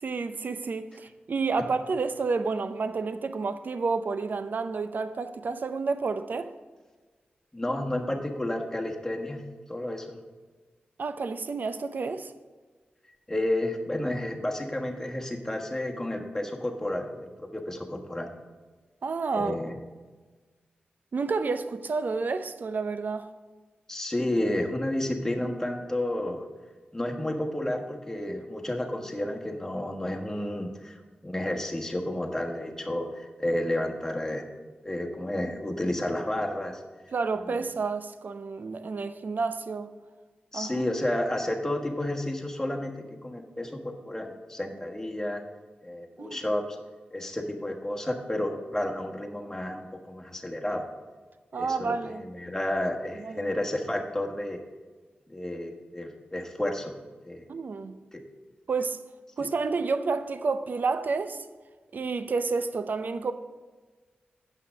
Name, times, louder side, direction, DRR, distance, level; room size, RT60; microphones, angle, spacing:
voice 1, 0.0-6.5 11.0-12.3 19.0-19.6 21.1-23.3 37.1-39.9 40.5-40.8 46.2-46.4 51.5-52.2 53.2-53.5 57.5-58.0 58.7-59.0 59.4-61.5 61.9-63.3, right 4 dB, 60° right, 0.6 m, -30 dB
voice 2, 7.5-9.4 9.7-10.1 13.3-18.3 19.4-19.8 23.9-26.5 26.9-30.9 31.2-34.4 34.8-36.8 40.5-42.9 43.2-45.4 45.8-46.6 47.1-50.8 51.6-54.6 55.3-57.0 57.2-57.5 58.1-58.2, left 1 dB, 15° left, 1.4 m, -31 dB
7.9 x 5.7 x 7.2 m
cardioid pair, 60°, 3 cm